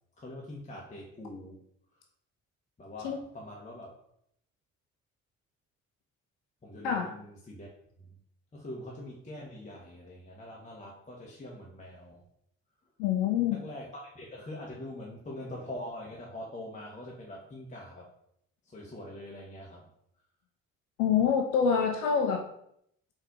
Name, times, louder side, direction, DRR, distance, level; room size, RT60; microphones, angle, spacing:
voice 1, 0.2-1.6 1.9-2.0 2.8-3.9 6.6-7.7 8.0-8.2 8.5-12.2 13.5-18.1 18.6-19.9, left 1 dB, 20° left, -3 dB, 0.8 m, -43 dB
voice 2, 13.0-13.6 21.0-22.4, left 7 dB, 65° left, 4 dB, 0.5 m, -26 dB
4.0 x 2.5 x 4.0 m, 0.73 s
figure-of-eight pair, 45°, 39 cm